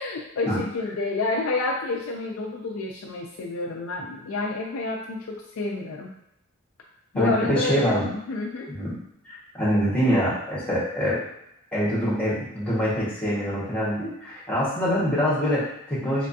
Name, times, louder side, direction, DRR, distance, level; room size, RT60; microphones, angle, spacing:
voice 1, 0.0-6.1 7.1-7.9 8.2-8.7, left 3 dB, 70° left, 0 dB, 0.4 m, -29 dB
voice 2, 7.1-8.1 8.7-9.0 9.2-11.2 11.7-16.3, equal, 5° left, -7 dB, 1.4 m, -24 dB
3.3 x 3.3 x 2.6 m, 0.80 s
head